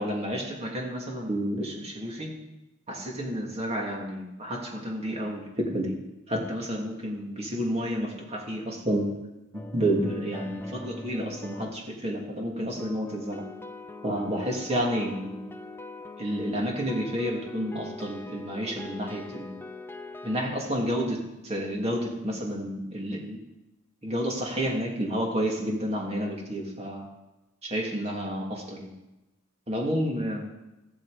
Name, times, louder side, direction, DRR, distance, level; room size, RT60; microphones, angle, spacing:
voice 1, 0.0-2.3 2.9-5.9 6.3-9.1 9.7-13.5 14.0-15.4 16.2-19.6 20.2-23.4 24.0-27.1 27.6-28.9 29.7-30.5, equal, 30° right, -1 dB, 2.7 m, -30 dB
sound 1, 9.5-11.9 12.8-20.4, left 2 dB, 10° left, 0.6 m, -42 dB
14.0 x 11.5 x 5.1 m, 1.0 s
head